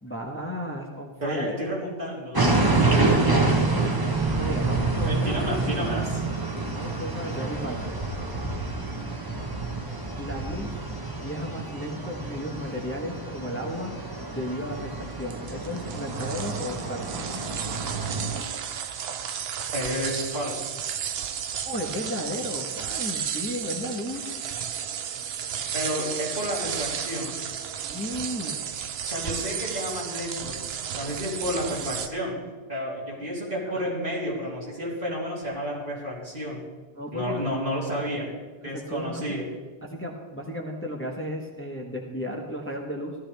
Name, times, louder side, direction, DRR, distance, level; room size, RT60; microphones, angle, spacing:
voice 1, 0.0-1.6 2.9-3.6 4.3-5.3 6.7-8.0 10.2-10.8 11.2-13.9 14.3-17.1 21.6-24.2 27.9-28.6 33.7-33.8 36.9-37.4 38.6-39.2 39.8-43.2, equal, 15° left, 0 dB, 1.2 m, -34 dB
voice 2, 1.2-2.4 5.0-6.2 19.7-20.6 25.7-27.3 29.1-30.6 31.0-32.4 32.7-36.6 37.1-38.3 38.6-39.5, equal, 55° right, -6 dB, 3.6 m, -31 dB
sound 1, 2.3-18.4, right 3 dB, 20° right, 1.2 m, -27 dB
sound 2, 15.0-32.1, right 8 dB, 80° right, 0.9 m, -33 dB
16.0 x 12.5 x 3.4 m, 1.3 s
omnidirectional pair, 1.0 m